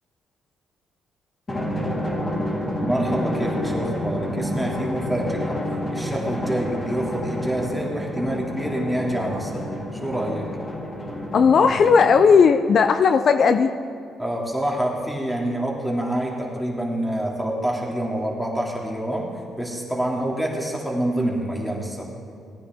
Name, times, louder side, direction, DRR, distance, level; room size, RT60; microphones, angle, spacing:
Drum, 1.5-12.5, left 1 dB, 30° left, 3.4 m, -29 dB
voice 1, 2.8-5.6 5.9-9.6 9.9-10.5 14.2-19.3 19.6-22.1, right 1 dB, ahead, -2 dB, 2.3 m, -27 dB
voice 2, 11.3-13.7, left 5 dB, 55° left, 9 dB, 0.4 m, -16 dB
17.5 x 9.6 x 3.5 m, 2.4 s
cardioid pair, 90°, 0 cm